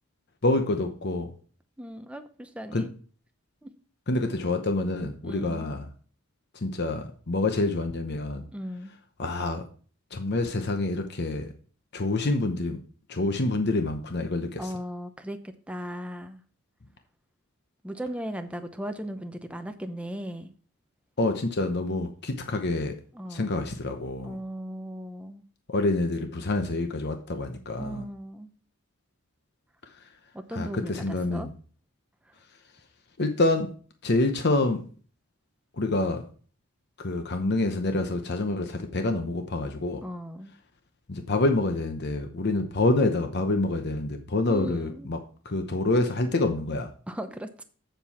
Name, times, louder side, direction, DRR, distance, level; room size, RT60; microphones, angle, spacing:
voice 1, 0.4-1.3 2.7-2.9 4.1-5.9 6.6-8.4 9.2-9.6 10.1-11.5 11.9-12.8 13.1-14.7 21.2-23.0 23.3-24.4 25.7-28.0 30.5-31.5 33.2-33.7 34.0-34.8 35.8-36.2 37.0-40.0 41.1-45.2 45.4-46.9, left 2 dB, 50° left, 6 dB, 0.9 m, -27 dB
voice 2, 1.8-2.9 3.6-3.7 5.2-5.7 8.5-8.9 14.6-16.4 17.8-20.5 23.1-23.6 24.2-25.4 27.8-28.5 30.3-31.5 40.0-40.5 44.5-45.1 47.1-47.6, equal, 5° right, 7 dB, 0.7 m, -37 dB
7.8 x 7.2 x 4.3 m, 0.42 s
head